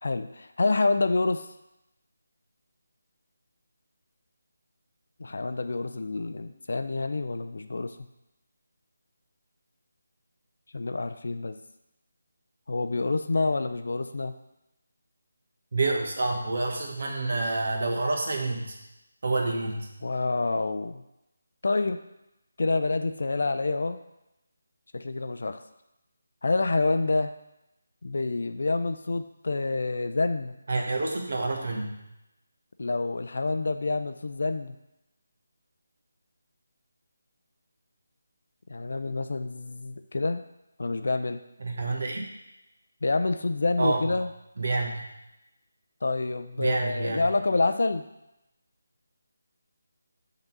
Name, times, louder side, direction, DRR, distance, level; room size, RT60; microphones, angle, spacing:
voice 1, 0.0-1.5 5.2-8.0 10.7-11.6 12.7-14.3 20.0-21.0 21.6-22.0 22.6-24.0 24.9-25.6 26.4-27.3 28.0-30.6 32.8-34.7 38.7-40.4 40.8-41.4 43.0-44.3 46.0-48.0, left 3 dB, 60° left, 9 dB, 0.5 m, -27 dB
voice 2, 15.7-18.8 19.2-19.9 30.7-31.9 41.6-42.2 43.8-44.1 44.6-45.1 46.6-47.3, right 2 dB, 55° right, 1 dB, 1.3 m, -28 dB
5.4 x 4.0 x 6.0 m, 0.90 s
figure-of-eight pair, 155°, 0 cm